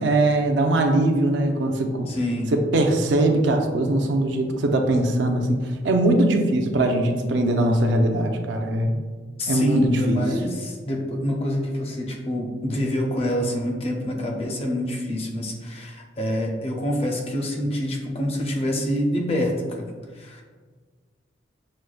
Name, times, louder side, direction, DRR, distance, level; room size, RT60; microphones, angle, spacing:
voice 1, 0.0-2.1 2.5-9.0 9.5-10.2, right 1 dB, 75° right, 4 dB, 0.4 m, -21 dB
voice 2, 2.1-2.5 9.4-20.4, left 1 dB, 35° left, 1 dB, 0.5 m, -26 dB
6.2 x 2.1 x 2.3 m, 1.5 s
head